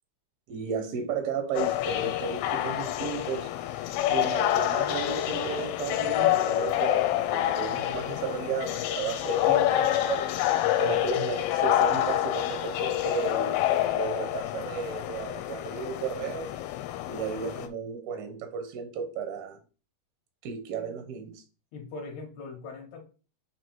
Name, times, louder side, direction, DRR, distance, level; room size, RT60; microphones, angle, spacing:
voice 1, 0.5-3.5 4.1-10.3 10.8-16.5 17.1-19.6 20.4-21.4, right 7 dB, 85° right, 2.0 m, -34 dB
sound 1, 1.6-17.7, left 13 dB, 90° left, 3.1 m, -27 dB
voice 2, 21.7-23.1, left 3 dB, 70° left, 2.9 m, -41 dB
7.4 x 3.2 x 4.5 m
omnidirectional pair, 5.6 m